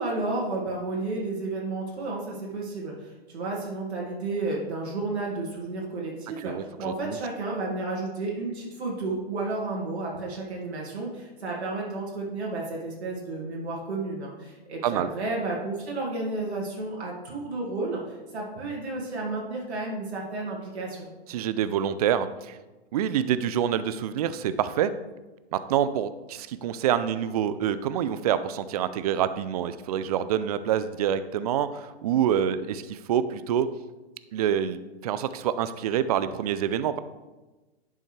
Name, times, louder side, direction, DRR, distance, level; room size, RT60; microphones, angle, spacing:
voice 1, 0.0-21.1, right 2 dB, 80° right, -3 dB, 2.2 m, -32 dB
voice 2, 6.4-7.2 14.8-15.1 21.3-22.6 22.9-24.9 25.5-33.7 34.3-37.0, right 9 dB, 40° right, 13 dB, 0.4 m, -26 dB
11.0 x 5.4 x 3.3 m, 1.1 s
hypercardioid pair, 135°, 32 cm